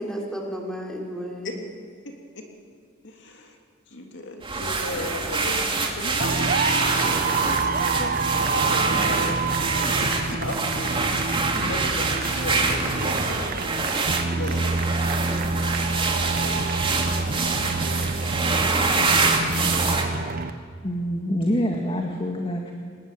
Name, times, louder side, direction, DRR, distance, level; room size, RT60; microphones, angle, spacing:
voice 1, 0.0-1.6 13.9-15.5, equal, 5° left, 0 dB, 3.5 m, -35 dB
voice 2, 2.0-2.4 3.0-3.6 3.9-8.2 8.5-13.5 14.4-15.5 16.0-16.7 17.2-17.8, left 1 dB, 65° left, 3 dB, 3.0 m, -36 dB
sound 1, 4.4-20.0, right 3 dB, 25° right, 2.5 m, -25 dB
sound 2, 6.2-20.5, right 3 dB, 45° right, 1.0 m, -27 dB
voice 3, 18.9-19.8 20.8-22.7, equal, 30° left, 2 dB, 2.0 m, -27 dB
24.0 x 20.5 x 9.1 m, 2.1 s
head